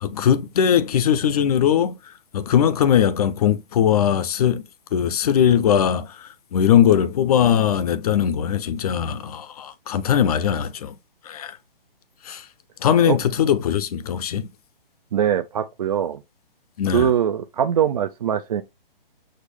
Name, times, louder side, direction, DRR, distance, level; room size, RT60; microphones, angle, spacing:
voice 1, 0.0-4.6 4.9-10.9 11.2-11.6 12.2-12.5 12.8-14.5 16.8-17.1, left 9 dB, 40° left, 0.6 m, -20 dB
voice 2, 15.1-16.2 16.9-18.6, right 9 dB, 40° right, 0.4 m, -22 dB
6.4 x 2.4 x 3.4 m
hypercardioid pair, 150°, 29 cm